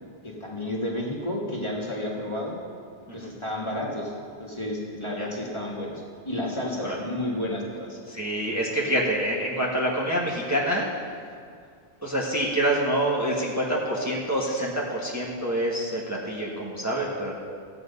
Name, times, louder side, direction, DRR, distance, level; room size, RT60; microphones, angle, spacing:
voice 1, 0.2-2.5 3.1-4.1 4.4-8.0, left 1 dB, 25° left, -4 dB, 1.8 m, -31 dB
voice 2, 8.1-10.8 12.0-17.3, right 1 dB, 15° right, -4 dB, 1.4 m, -26 dB
14.0 x 8.2 x 5.4 m, 2.2 s
omnidirectional pair, 1.1 m